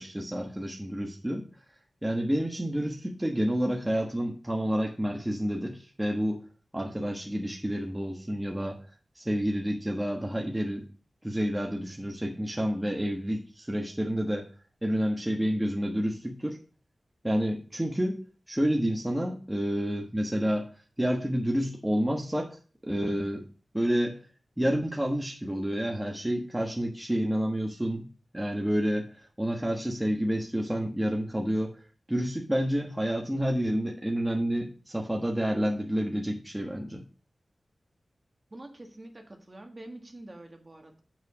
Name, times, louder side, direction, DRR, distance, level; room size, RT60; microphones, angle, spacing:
voice 1, 0.0-1.5 2.0-6.4 6.7-8.8 9.2-10.8 11.2-14.5 14.8-16.6 17.2-18.2 18.5-20.7 21.0-22.6 22.8-23.4 23.7-24.2 24.6-28.1 28.3-29.1 29.4-31.7 32.1-37.0, equal, 10° right, 0 dB, 1.3 m, -29 dB
voice 2, 38.5-41.0, right 1 dB, 35° right, 4 dB, 1.6 m, -46 dB
7.7 x 5.6 x 5.1 m, 0.37 s
wide cardioid pair, 95°, 0 cm